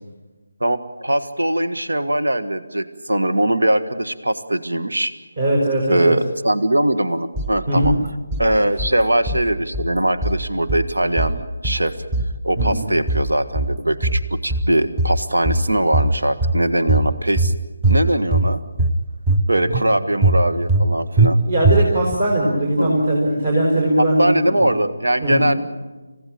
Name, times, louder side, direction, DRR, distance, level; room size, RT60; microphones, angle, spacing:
voice 1, 0.6-5.1 5.9-7.9 8.4-11.9 12.4-17.5 17.9-18.6 19.5-21.4 22.8-23.0 24.0-25.5, right 1 dB, 70° right, 10 dB, 1.5 m, -21 dB
voice 2, 5.4-6.1 7.7-7.9 12.6-12.8 21.5-24.7 25.2-25.5, right 1 dB, 45° right, -1 dB, 4.9 m, -19 dB
sound 1, 7.4-8.0 8.3-9.0 9.3-10.0 10.2-10.9 11.2-11.9 12.1-12.8 13.1-13.8 14.0-14.7 15.0-15.7 15.9-16.6 16.9-17.5 17.8-18.5 18.8-19.4 19.7-19.9 20.2-20.9 21.2-21.3 21.6-22.1, right 2 dB, 15° right, 1.1 m, -19 dB
28.5 x 16.5 x 9.1 m, 1.2 s
figure-of-eight pair, 155°, 0 cm